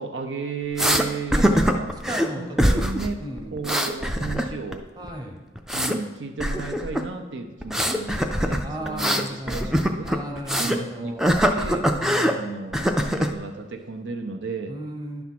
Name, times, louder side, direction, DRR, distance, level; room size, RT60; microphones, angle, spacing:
voice 1, 0.0-2.0 2.4-3.2 3.5-4.9 5.7-10.1 10.6-11.9 12.3-14.7, right 4 dB, 85° right, 4 dB, 0.7 m, -33 dB
sound 1, 0.8-1.0 1.3-2.3 2.6-3.1 3.4-4.7 5.0-6.0 6.4-7.1 7.6-10.8 11.2-12.3 12.7-13.3, equal, 5° right, 0.3 m, -22 dB
voice 2, 2.1-2.9 3.2-3.6 5.0-5.4 8.6-11.3 12.0-12.5 14.7-15.2, right 1 dB, 20° right, 2 dB, 0.9 m, -35 dB
10.0 x 3.5 x 5.9 m, 1.2 s
head